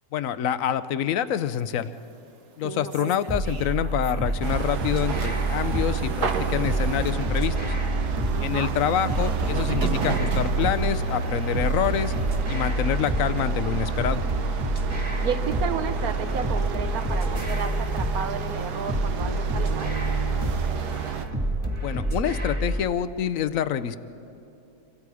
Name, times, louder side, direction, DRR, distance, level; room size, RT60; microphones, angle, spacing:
voice 1, 0.1-1.9 2.6-7.7 8.4-12.1 12.5-14.2 21.8-24.0, left 9 dB, 65° left, 14 dB, 1.0 m, -27 dB
sound 1, 1.4-4.7 4.9-21.3, right 5 dB, 50° right, 1.2 m, -46 dB
voice 2, 2.6-3.2 8.3-8.7 15.2-19.9, right 7 dB, 65° right, 10 dB, 1.4 m, -32 dB
sound 2, 3.3-22.9, right 2 dB, 20° right, 1.9 m, -28 dB
sound 3, 4.4-21.3, right 5 dB, 90° right, 1.7 m, -30 dB
27.5 x 25.0 x 4.9 m, 2.9 s
omnidirectional pair, 1.7 m